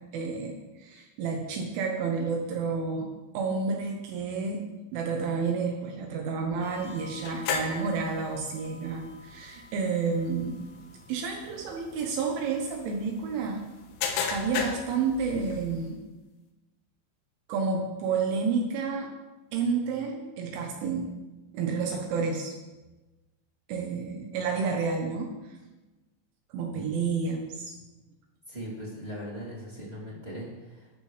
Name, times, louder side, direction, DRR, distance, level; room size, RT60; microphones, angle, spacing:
voice 1, 0.1-10.6 11.1-13.6 14.3-16.0 17.5-19.1 19.5-21.1 21.5-22.5 23.7-25.6 26.5-27.7, right 5 dB, 75° right, 1 dB, 3.4 m, -30 dB
sound 1, 6.6-15.9, left 6 dB, 75° left, 3.6 m, -37 dB
voice 2, 28.5-30.9, equal, 20° right, -5 dB, 1.6 m, -39 dB
15.0 x 13.0 x 3.3 m, 1.1 s
omnidirectional pair, 5.8 m